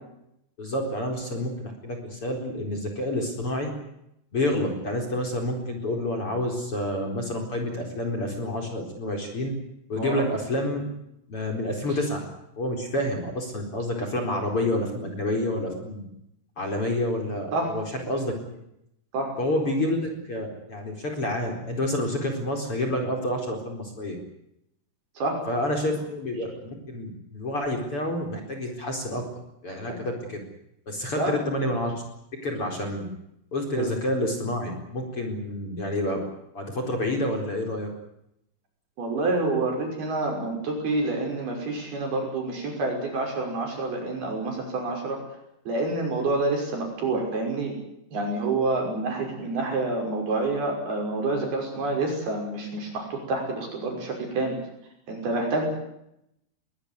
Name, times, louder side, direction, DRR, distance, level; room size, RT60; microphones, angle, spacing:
voice 1, 0.6-3.7 4.3-9.5 9.9-10.8 11.3-12.2 12.6-16.0 16.6-18.6 19.4-24.2 25.5-29.2 29.6-30.4 30.9-32.0 32.4-33.1 33.5-36.2 36.5-37.9, left 1 dB, 35° left, 3 dB, 4.9 m, -28 dB
voice 2, 39.0-45.2 45.7-47.8 48.1-54.6 55.1-55.7, right 2 dB, 65° right, 2 dB, 7.8 m, -28 dB
22.5 x 20.5 x 9.7 m, 0.81 s
omnidirectional pair, 4.8 m